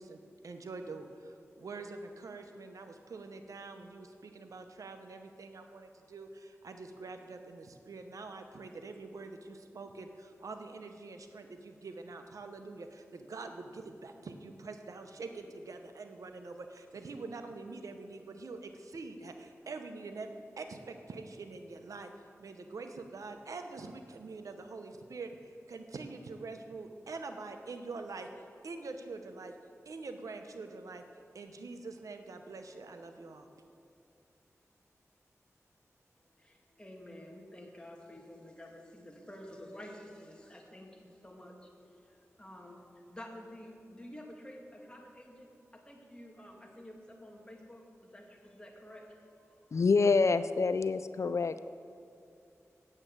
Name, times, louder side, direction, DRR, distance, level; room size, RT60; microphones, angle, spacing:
voice 1, 0.0-22.1 22.4-28.3 28.6-29.5 29.9-31.0 31.3-33.5, right 3 dB, 85° right, 6 dB, 0.8 m, -45 dB
voice 2, 36.2-49.8, left 1 dB, 15° left, 0 dB, 2.0 m, -50 dB
voice 3, 49.7-51.6, left 4 dB, 60° left, 13 dB, 0.3 m, -26 dB
8.9 x 7.4 x 7.9 m, 2.6 s
cardioid pair, 50°, 6 cm